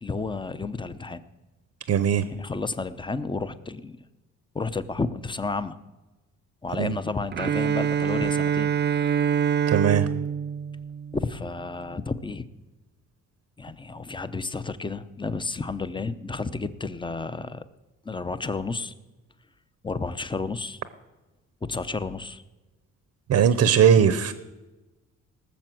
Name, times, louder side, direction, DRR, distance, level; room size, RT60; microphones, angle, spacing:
voice 1, 0.0-1.2 2.3-4.0 4.5-5.8 6.6-8.7 11.1-12.5 13.6-17.6 18.0-18.9 19.8-20.8 21.6-22.4, left 3 dB, 15° left, 13 dB, 0.8 m, -31 dB
voice 2, 1.9-2.3 6.8-7.0 9.7-10.1 23.3-24.3, right 8 dB, 60° right, 13 dB, 0.9 m, -19 dB
Bowed string instrument, 7.3-11.4, right 8 dB, 35° right, 0.4 m, -25 dB
18.5 x 6.8 x 7.7 m, 1.1 s
cardioid pair, 90°, 30 cm